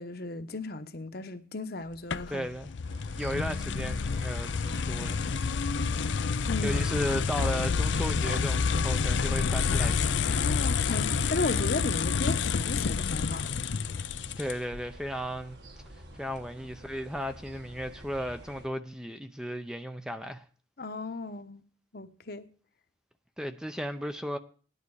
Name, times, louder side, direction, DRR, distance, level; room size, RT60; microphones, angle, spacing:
voice 1, 0.0-2.5 6.5-6.8 10.3-13.6 20.8-21.6 21.9-22.5, left 2 dB, 50° left, 1.1 m, -35 dB
sound 1, 2.1-14.8, left 5 dB, 70° left, 0.6 m, -28 dB
voice 2, 2.3-2.7 3.2-5.2 6.6-10.5 14.4-15.6 15.9-20.4 23.4-24.4, equal, 5° right, 0.6 m, -35 dB
sound 2, 2.9-18.7, right 1 dB, 60° right, 2.2 m, -48 dB
17.5 x 11.0 x 4.8 m
head